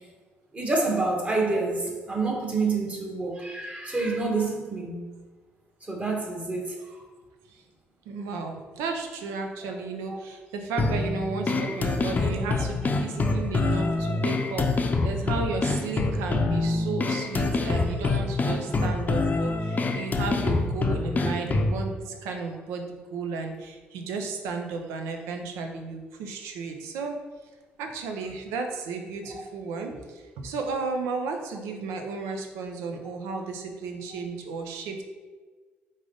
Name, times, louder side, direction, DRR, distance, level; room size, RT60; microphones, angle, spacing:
voice 1, 0.5-5.1 5.8-7.0 9.6-9.7 10.1-10.2, right 3 dB, 30° right, 0 dB, 1.2 m, -28 dB
voice 2, 8.1-27.1 27.8-35.0, right 4 dB, 90° right, 4 dB, 0.5 m, -33 dB
sound 1, 10.8-21.8, left 3 dB, 35° left, 0.5 m, -26 dB
3.9 x 3.2 x 3.8 m, 1.4 s
supercardioid pair, 65°, 5 cm